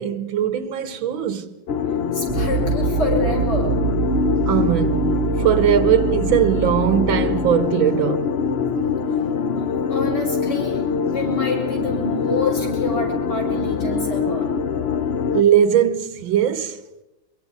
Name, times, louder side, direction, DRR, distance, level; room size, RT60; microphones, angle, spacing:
voice 1, 0.0-1.6 4.5-8.3 15.3-16.8, right 10 dB, 75° right, 1.7 m, -20 dB
sound 1, 1.7-15.4, left 6 dB, 85° left, 0.5 m, -23 dB
voice 2, 2.1-3.8 9.5-10.8 11.1-14.5, left 2 dB, 55° left, 6.5 m, -28 dB
horns combined droppitch, 2.3-7.6, right 9 dB, 55° right, 1.1 m, -25 dB
23.0 x 23.0 x 5.3 m
omnidirectional pair, 2.2 m